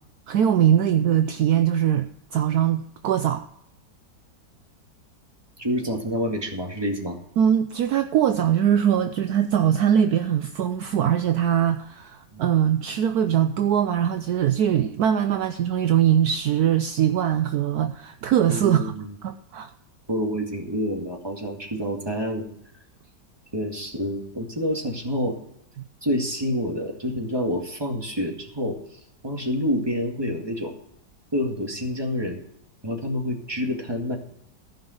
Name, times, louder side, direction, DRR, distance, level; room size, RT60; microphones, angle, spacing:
voice 1, 0.3-3.5 7.4-18.9 19.2-19.7, right 9 dB, 70° right, 1.1 m, -22 dB
voice 2, 5.6-7.2 12.3-12.4 18.4-19.1 20.1-22.5 23.5-25.4 26.0-28.8 29.2-30.8 31.3-32.4 32.8-34.2, equal, 15° right, 2.0 m, -28 dB
15.0 x 5.5 x 7.9 m
omnidirectional pair, 1.8 m